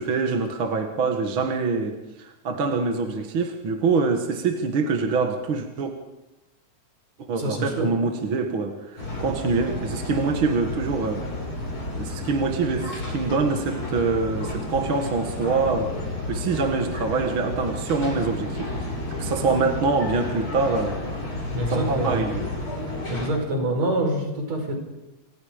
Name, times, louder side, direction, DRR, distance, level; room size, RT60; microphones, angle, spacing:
voice 1, 0.0-5.9 7.3-11.2 12.0-15.9 16.3-18.9 19.2-21.0 21.7-22.4, right 4 dB, 50° right, 4 dB, 2.2 m, -25 dB
voice 2, 7.4-7.9 21.5-22.2 23.1-24.7, right 1 dB, 65° right, 3 dB, 6.2 m, -26 dB
sound 1, 9.0-23.3, left 1 dB, 45° left, 7.0 m, -31 dB
29.5 x 25.0 x 5.2 m, 1.0 s
omnidirectional pair, 3.4 m